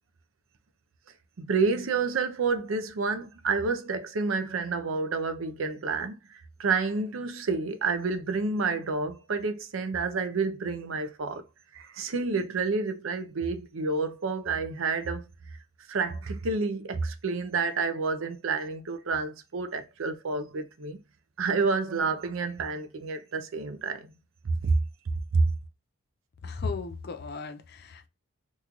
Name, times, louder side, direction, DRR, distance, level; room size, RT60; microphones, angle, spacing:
voice 1, 1.4-11.4 11.7-15.3 15.9-21.0 21.4-24.1 24.4-24.8 25.3-25.4, right 4 dB, 75° right, 0.5 m, -29 dB
voice 2, 26.4-28.1, left 4 dB, 50° left, 0.5 m, -35 dB
3.0 x 2.3 x 3.7 m
head